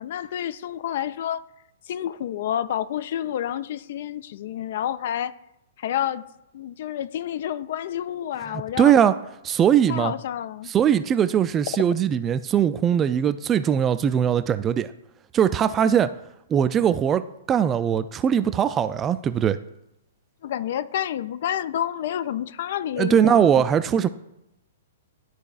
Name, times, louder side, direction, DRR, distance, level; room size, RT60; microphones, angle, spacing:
voice 1, 0.0-1.4 1.9-5.3 5.8-6.2 6.5-8.9 9.9-10.7 20.4-23.5, left 10 dB, 55° left, 0.4 m, -29 dB
voice 2, 8.5-9.1 9.4-10.1 10.7-14.9 15.3-16.1 16.5-19.6 23.0-24.1, right 9 dB, 20° right, 0.3 m, -20 dB
12.0 x 4.1 x 2.4 m
figure-of-eight pair, 115°, 0 cm